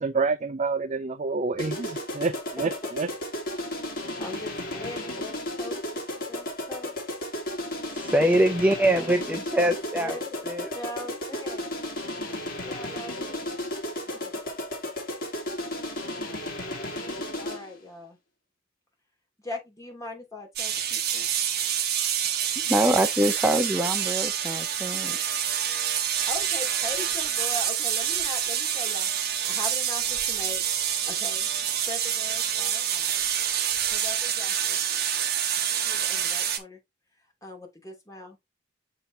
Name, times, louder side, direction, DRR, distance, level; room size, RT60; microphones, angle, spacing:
voice 1, 0.0-3.1, right 4 dB, 35° right, 0.4 m, -28 dB
sound 1, 1.6-17.8, left 1 dB, 50° left, 3.1 m, -34 dB
voice 2, 2.6-2.9 4.2-7.2 8.1-9.0 9.3-11.7 12.6-13.5 14.1-14.6 17.4-18.2 19.4-21.3 26.3-30.6 31.1-31.5 31.9-33.2 33.9-34.8 35.8-36.8 37.4-38.5, left 2 dB, 15° left, 2.9 m, -40 dB
voice 3, 7.9-10.2 10.5-10.7 22.7-25.2, right 1 dB, 10° right, 0.7 m, -24 dB
sound 2, 20.6-36.6, right 9 dB, 55° right, 1.2 m, -27 dB
6.8 x 5.7 x 2.8 m
head